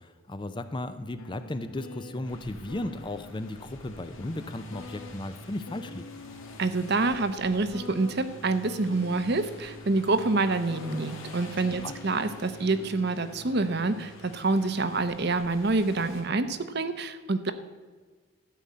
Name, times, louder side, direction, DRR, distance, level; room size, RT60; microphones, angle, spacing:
voice 1, 0.0-6.0 11.7-12.0, left 2 dB, 20° left, 10 dB, 0.5 m, -35 dB
sound 1, 1.2-16.3, left 1 dB, 90° left, 1.0 m, -46 dB
sound 2, 2.2-16.2, left 2 dB, 70° left, 2.2 m, -50 dB
voice 2, 6.6-17.5, right 3 dB, 50° right, 11 dB, 0.8 m, -27 dB
13.0 x 5.5 x 8.4 m, 1.5 s
head